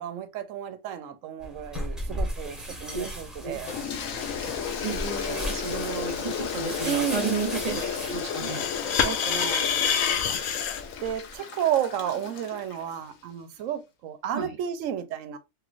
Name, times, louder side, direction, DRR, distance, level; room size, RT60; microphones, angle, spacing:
voice 1, 0.0-3.7 6.8-7.4 9.0-9.7 11.0-15.4, right 10 dB, 90° right, 1.0 m, -32 dB
sound 1, 1.4-8.1, equal, ahead, 1.0 m, -36 dB
Toilet flush, 3.6-13.0, left 7 dB, 85° left, 1.1 m, -34 dB
voice 2, 4.8-8.7 14.3-14.6, right 5 dB, 35° right, 0.8 m, -32 dB
sound 2, 7.5-10.8, left 7 dB, 65° left, 0.8 m, -27 dB
3.2 x 3.0 x 2.4 m
omnidirectional pair, 1.3 m